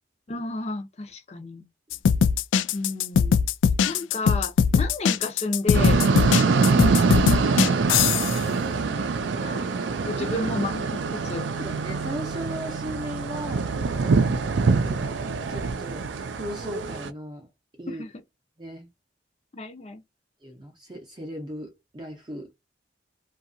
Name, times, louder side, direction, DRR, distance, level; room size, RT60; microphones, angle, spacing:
voice 1, 0.3-1.7 2.7-3.4 3.9-6.0 6.8-8.1 9.4-9.7 10.1-11.4 14.1-14.5 17.9-18.1 19.5-20.0, left 2 dB, 35° left, 0.5 m, -32 dB
sound 1, 1.9-8.4, left 6 dB, 85° left, 0.3 m, -21 dB
sound 2, 5.7-17.1, right 4 dB, 75° right, 0.4 m, -24 dB
voice 2, 8.3-9.6 10.2-10.5 11.6-13.7 14.8-15.2 15.5-16.1 16.3-17.5 17.8-18.0 18.6-18.9 20.4-22.5, equal, 25° right, 0.5 m, -37 dB
2.7 x 2.3 x 2.5 m
head